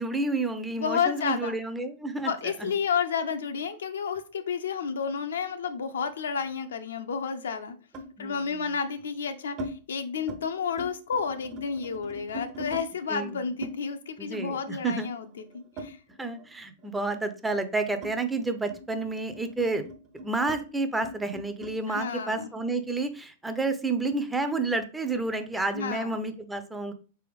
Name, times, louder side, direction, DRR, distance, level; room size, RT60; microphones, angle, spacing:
voice 1, 0.0-2.3 8.2-8.5 13.1-13.3 14.2-15.1 16.2-19.9 20.2-26.9, right 3 dB, 10° right, 8 dB, 0.5 m, -30 dB
voice 2, 0.8-1.6 2.2-7.8 8.2-16.0 21.9-22.5 25.7-26.2, left 6 dB, 90° left, 8 dB, 0.6 m, -31 dB
sound 1, 5.1-6.6 7.9-8.2 8.9-9.7 10.1-10.4 10.7-12.9 13.6-16.5 16.8-21.8, equal, 35° right, 0.8 m, -42 dB
4.2 x 3.4 x 3.4 m, 0.36 s
hypercardioid pair, 120°, 0 cm